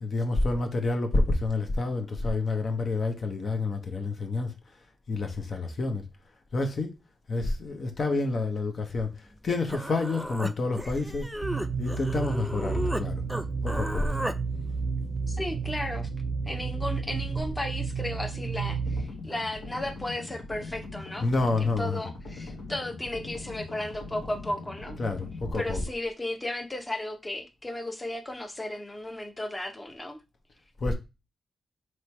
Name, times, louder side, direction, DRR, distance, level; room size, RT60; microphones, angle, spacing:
voice 1, 0.0-4.5 5.1-6.0 6.5-6.9 7.3-11.3 11.8-13.2 13.6-14.2 21.2-22.0 25.0-25.8 30.8-30.9, left 3 dB, 55° left, 0.8 m, -28 dB
Human voice, 9.3-9.4 9.7-13.0 13.3-14.4, equal, 5° right, 0.4 m, -34 dB
sound 1, 11.4-19.1, right 5 dB, 90° right, 0.5 m, -31 dB
voice 2, 15.3-16.1 16.5-21.2 21.6-25.0 25.5-30.2, left 1 dB, 20° left, 0.8 m, -35 dB
sound 2, 18.9-25.9, left 3 dB, 90° left, 1.2 m, -41 dB
3.2 x 3.0 x 4.4 m
cardioid pair, 80°, 0 cm